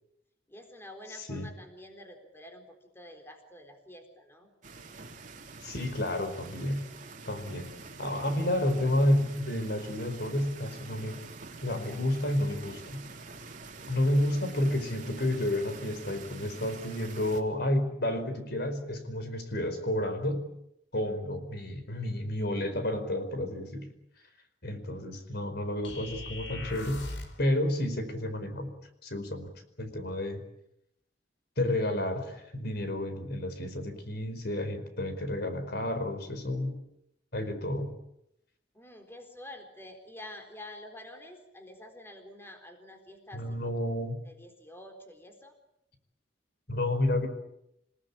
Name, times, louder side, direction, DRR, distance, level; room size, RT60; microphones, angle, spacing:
voice 1, 0.5-4.5 38.7-43.9 44.2-45.5, left 1 dB, 15° left, 5 dB, 4.0 m, -48 dB
sound 1, 4.6-17.4, right 3 dB, 45° right, 3.0 m, -46 dB
voice 2, 5.6-6.9 7.3-7.7 8.0-11.2 11.6-13.0 13.9-20.5 20.9-23.9 24.6-27.1 27.4-28.7 29.0-29.5 29.8-30.4 31.6-36.7 37.3-37.9 43.3-44.1 46.7-47.3, left 1 dB, 60° left, 9 dB, 4.8 m, -30 dB
sound 2, 25.8-27.5, left 2 dB, 75° left, 4.9 m, -40 dB
28.0 x 18.5 x 8.6 m, 0.80 s
head